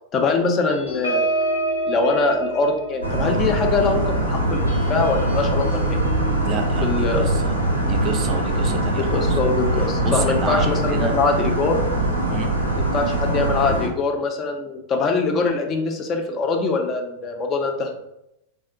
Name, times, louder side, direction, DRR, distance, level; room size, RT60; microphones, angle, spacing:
voice 1, 0.1-1.2 1.9-6.0 6.8-7.2 9.0-11.8 12.8-17.9, left 4 dB, 30° left, 4 dB, 0.4 m, -23 dB
sound 1, 0.7-9.6 10.1-10.3 10.6-10.9, right 2 dB, 90° left, 0.8 m, -30 dB
sound 2, 3.0-13.9, right 1 dB, 90° right, 0.5 m, -22 dB
voice 2, 6.4-6.9 7.2-7.6 7.8-9.4 10.0-11.2 12.3-12.5, right 4 dB, 35° right, 4 dB, 0.4 m, -28 dB
3.5 x 2.1 x 2.4 m, 0.82 s
figure-of-eight pair, 90°, 0 cm